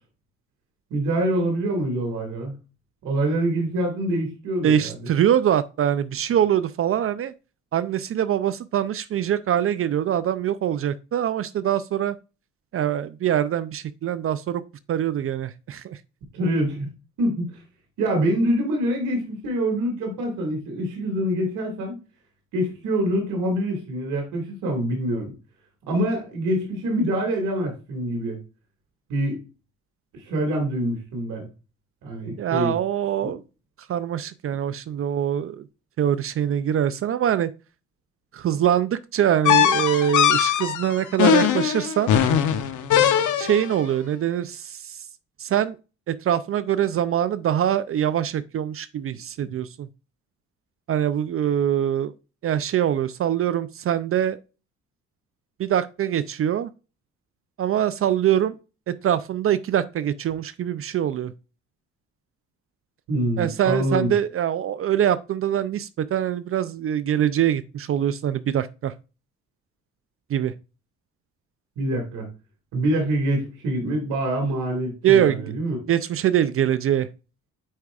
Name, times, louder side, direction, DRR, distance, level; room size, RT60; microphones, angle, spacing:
voice 1, 0.9-2.5 3.0-4.9 16.3-16.9 17.2-17.5 18.0-22.0 22.5-25.3 25.9-28.4 29.1-29.4 30.1-31.4 32.0-32.7 33.2-33.3 49.4-49.5 63.1-64.1 71.8-72.3 72.7-75.8, right 1 dB, 90° right, 2.2 m, -25 dB
voice 2, 4.6-7.3 7.7-12.2 12.7-14.6 14.9-16.0 32.4-33.4 33.9-35.6 36.0-37.5 38.3-42.1 43.4-45.0 45.4-45.8 46.1-49.9 50.9-52.1 52.4-54.4 55.6-56.7 57.6-58.6 58.9-61.3 63.4-68.9 70.3-70.5 75.0-75.6 75.9-77.1, right 10 dB, 50° right, 0.4 m, -23 dB
sound 1, 39.5-43.7, left 9 dB, 80° left, 0.9 m, -20 dB
8.7 x 4.7 x 2.4 m
cardioid pair, 90°, 30 cm